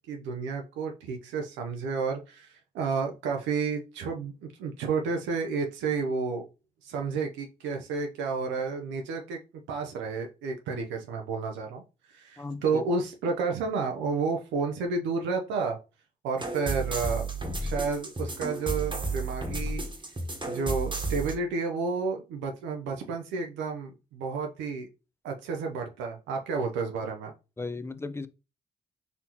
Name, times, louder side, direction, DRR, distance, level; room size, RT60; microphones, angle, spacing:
voice 1, 0.1-6.4 6.8-9.4 9.7-11.8 12.1-15.8 16.2-17.3 17.6-19.8 20.5-24.9 25.2-27.3, right 4 dB, 85° right, 0.5 m, -31 dB
voice 2, 12.4-12.8 20.5-20.6 27.6-28.3, left 3 dB, 15° left, 0.4 m, -36 dB
sound 1, 16.4-21.4, right 3 dB, 25° right, 1.1 m, -32 dB
4.1 x 2.7 x 2.9 m
supercardioid pair, 45°, 19 cm